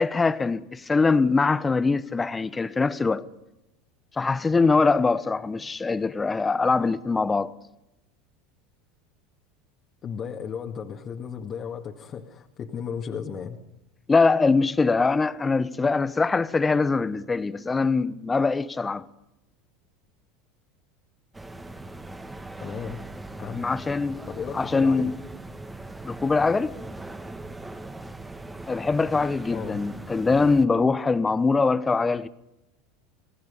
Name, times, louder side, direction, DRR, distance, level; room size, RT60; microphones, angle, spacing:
voice 1, 0.0-3.3 4.2-7.5 14.1-19.0 23.5-24.2 24.5-25.1 26.0-26.8 28.7-32.3, left 4 dB, 20° left, 1.1 m, -23 dB
voice 2, 10.0-13.6 22.6-23.0 23.4-23.7 24.3-25.1 29.5-29.8, left 7 dB, 35° left, 2.1 m, -35 dB
sound 1, 21.3-30.6, right 2 dB, 10° right, 1.9 m, -40 dB
28.0 x 19.0 x 5.3 m
figure-of-eight pair, 75°, 0 cm